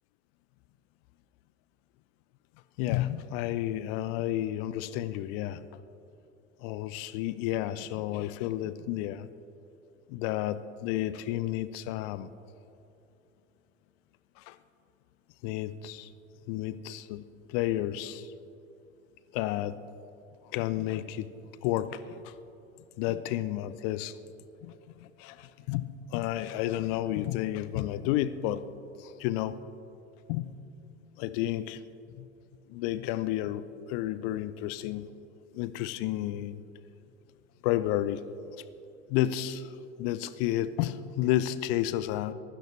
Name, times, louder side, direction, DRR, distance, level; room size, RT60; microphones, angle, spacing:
voice 1, 2.8-5.6 6.6-9.3 10.1-12.3 14.4-14.5 15.4-16.1 16.5-17.2 17.5-18.3 19.3-19.8 20.5-21.3 21.6-22.3 23.0-24.1 24.6-24.7 25.0-28.6 29.0-29.5 30.3-30.5 31.2-31.8 32.2-32.3 32.7-35.1 35.5-36.6 37.6-38.3 39.1-42.3, left 13 dB, 50° left, 15 dB, 0.7 m, -31 dB
23.0 x 16.0 x 3.3 m, 2.9 s
figure-of-eight pair, 70°, 37 cm